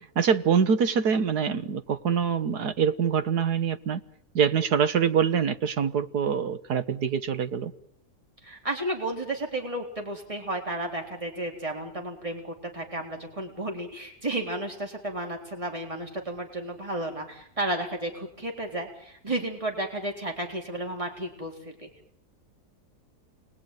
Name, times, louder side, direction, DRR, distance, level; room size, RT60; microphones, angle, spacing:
voice 1, 0.2-4.0 4.4-7.7, right 7 dB, 80° right, 11 dB, 1.9 m, -24 dB
voice 2, 8.4-21.9, right 1 dB, 20° right, 2 dB, 4.0 m, -33 dB
29.0 x 21.0 x 9.3 m, 0.75 s
omnidirectional pair, 1.7 m